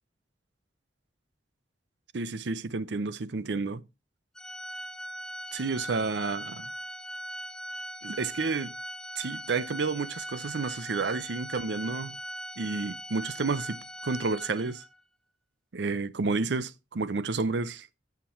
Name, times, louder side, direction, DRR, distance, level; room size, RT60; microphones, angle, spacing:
voice 1, 2.1-3.8 5.5-6.7 8.0-8.7 9.2-12.2 12.6-14.8 15.7-17.9, right 4 dB, 75° right, 0.6 m, -31 dB
Organ, 4.4-15.0, equal, 5° left, 0.6 m, -40 dB
13.0 x 6.0 x 4.4 m
head